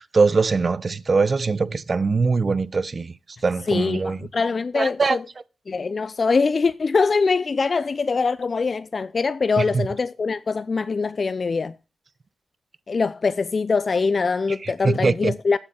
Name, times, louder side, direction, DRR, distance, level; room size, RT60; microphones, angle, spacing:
voice 1, 0.0-3.1 3.4-4.2 4.8-5.2 9.6-9.9 14.6-15.3, right 4 dB, 50° right, 0.6 m, -22 dB
voice 2, 3.7-5.3 5.7-11.7 12.9-15.6, left 4 dB, 55° left, 0.4 m, -23 dB
7.8 x 4.3 x 7.0 m
cardioid pair, 50°, 0 cm